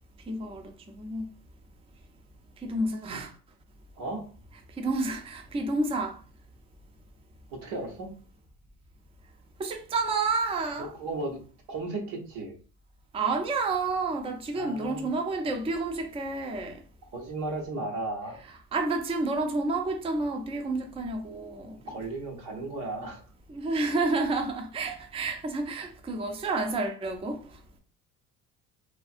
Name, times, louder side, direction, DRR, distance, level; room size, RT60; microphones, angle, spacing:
voice 1, 0.3-1.3 2.6-3.3 4.8-6.2 9.6-10.9 13.1-16.8 18.7-21.8 23.5-27.4, right 3 dB, 15° right, 0.4 m, -30 dB
voice 2, 7.5-8.1 10.8-11.4 11.7-12.6 14.5-15.1 15.4-15.5 17.1-18.4 21.9-23.2, right 2 dB, 80° right, 1.0 m, -35 dB
2.5 x 2.3 x 2.5 m
hypercardioid pair, 60°, 44 cm